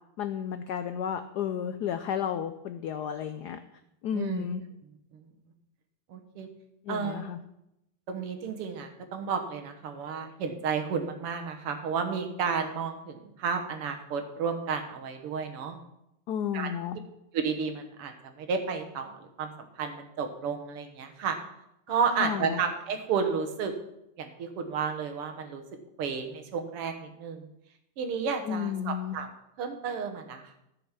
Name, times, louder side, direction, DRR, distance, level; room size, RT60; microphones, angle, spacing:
voice 1, 0.2-3.6 4.0-4.6 6.9-7.4 16.3-17.0 22.2-22.6 28.5-29.2, left 8 dB, 90° left, 10 dB, 0.8 m, -32 dB
voice 2, 4.1-4.5 6.1-6.5 6.9-7.2 8.1-15.8 16.5-16.7 17.3-21.4 21.9-23.7 24.2-25.6 26.0-27.5 28.0-29.3 29.6-30.6, right 6 dB, 90° right, 6 dB, 2.2 m, -32 dB
13.0 x 6.6 x 5.8 m, 0.84 s
omnidirectional pair, 2.4 m